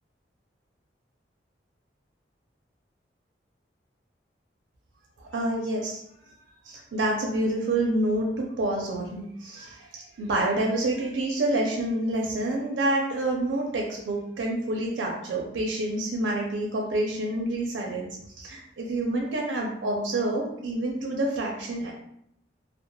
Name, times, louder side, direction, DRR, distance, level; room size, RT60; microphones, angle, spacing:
voice 1, 5.2-6.0 6.6-21.9, right 1 dB, 90° right, 0 dB, 0.4 m, -28 dB
2.2 x 2.0 x 3.0 m, 0.73 s
head